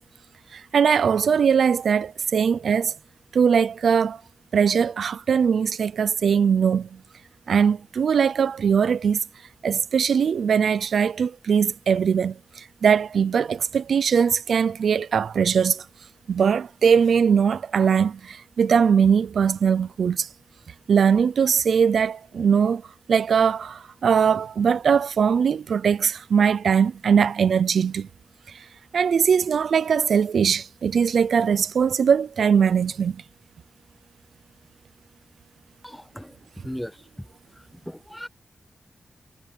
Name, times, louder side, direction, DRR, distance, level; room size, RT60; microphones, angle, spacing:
voice 1, 0.5-3.0 3.3-4.2 4.5-7.0 7.5-9.2 9.6-15.9 16.3-20.3 20.9-22.8 23.1-28.1 28.5-28.6 28.9-33.2, right 7 dB, 90° right, 0.5 m, -21 dB
voice 2, 35.8-36.4 36.6-37.0 37.6-38.3, equal, 5° left, 1.1 m, -37 dB
wide cardioid pair, 95°, 0 cm